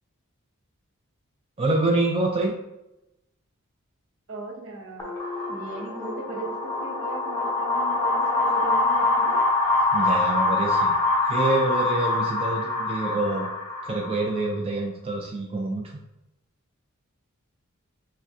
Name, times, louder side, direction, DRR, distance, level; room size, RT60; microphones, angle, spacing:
voice 1, 1.6-2.6 9.9-10.9 11.3-13.5 13.8-15.9, right 2 dB, 25° right, 0 dB, 0.4 m, -26 dB
voice 2, 4.3-5.1 5.5-9.4, right 2 dB, 65° right, 0 dB, 0.8 m, -37 dB
sound 1, 5.0-14.5, left 2 dB, 15° left, 0.8 m, -25 dB
5.9 x 2.2 x 2.6 m, 0.91 s
head